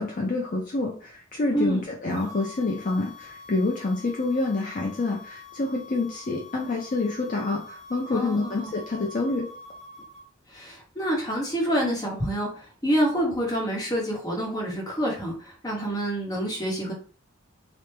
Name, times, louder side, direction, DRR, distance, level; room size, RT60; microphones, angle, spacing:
voice 1, 0.0-9.5, left 2 dB, 40° left, -1 dB, 0.4 m, -27 dB
voice 2, 1.5-1.8 8.1-8.7 10.5-16.9, equal, 20° left, -2 dB, 0.8 m, -27 dB
sound 1, 2.1-10.2, left 3 dB, 55° right, 0.6 m, -45 dB
3.2 x 2.0 x 3.1 m, 0.41 s
head